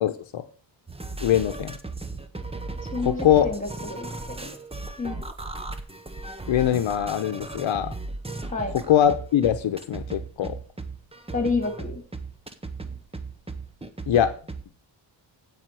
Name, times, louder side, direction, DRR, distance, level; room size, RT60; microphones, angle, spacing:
voice 1, 0.0-0.4 1.2-1.8 3.0-3.5 6.5-7.9 8.7-10.6 14.1-14.3, left 10 dB, 80° left, 8 dB, 0.9 m, -22 dB
sound 1, 0.9-14.6, right 3 dB, 15° right, 0.9 m, -36 dB
voice 2, 2.9-4.1 4.4-4.5 5.0-5.2 8.5-8.7 11.3-12.0, left 3 dB, 15° left, 5 dB, 2.9 m, -29 dB
15.5 x 5.4 x 4.7 m, 0.40 s
wide cardioid pair, 120°, 45 cm